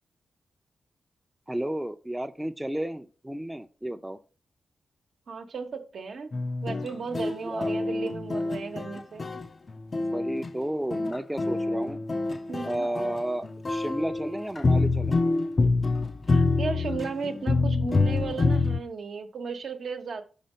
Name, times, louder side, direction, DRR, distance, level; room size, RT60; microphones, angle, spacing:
voice 1, 1.5-4.2 7.4-7.7 8.0-8.1 10.1-12.0 12.6-15.2, right 1 dB, 10° right, 0.5 m, -32 dB
voice 2, 5.3-6.3 6.6-9.3 12.5-12.9 16.3-20.2, right 5 dB, 75° right, 0.9 m, -35 dB
sound 1, 6.3-10.5 10.9-18.8, left 3 dB, 45° left, 0.5 m, -26 dB
5.6 x 3.6 x 5.3 m
cardioid pair, 55°, 0 cm